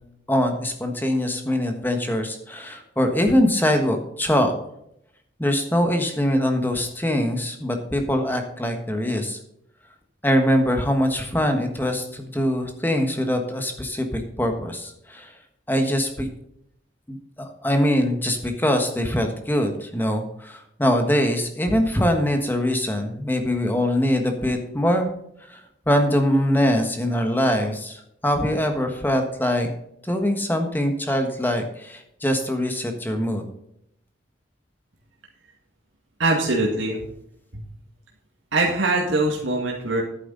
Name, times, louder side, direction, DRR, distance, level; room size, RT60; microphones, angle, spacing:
voice 1, 0.3-4.5 5.4-9.4 10.2-15.3 15.7-16.3 17.1-25.1 25.5-25.6 25.9-29.7 30.0-33.4, equal, 10° left, 5 dB, 1.4 m, -23 dB
voice 2, 36.2-37.0 37.5-37.6 38.5-40.0, right 2 dB, 80° right, -1 dB, 1.9 m, -22 dB
11.0 x 9.3 x 3.9 m, 0.76 s
head